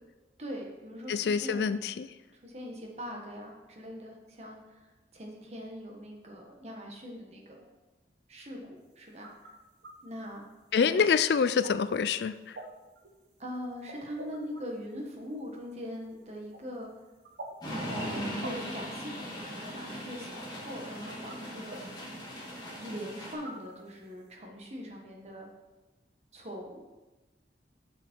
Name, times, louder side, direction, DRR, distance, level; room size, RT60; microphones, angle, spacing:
voice 1, 0.4-1.7 2.3-7.6 8.3-9.5 10.0-10.4 10.8-11.0 13.4-16.9 17.8-21.8 22.8-25.5 26.3-26.8, equal, 35° right, 0 dB, 1.4 m, -42 dB
voice 2, 1.1-2.1 10.7-12.6, left 6 dB, 70° left, 13 dB, 0.4 m, -26 dB
sound 1, 8.8-24.3, right 1 dB, 85° right, 1.2 m, -50 dB
sound 2, 17.6-23.3, equal, 20° left, 2.4 m, -39 dB
7.3 x 7.1 x 4.5 m, 1.1 s
head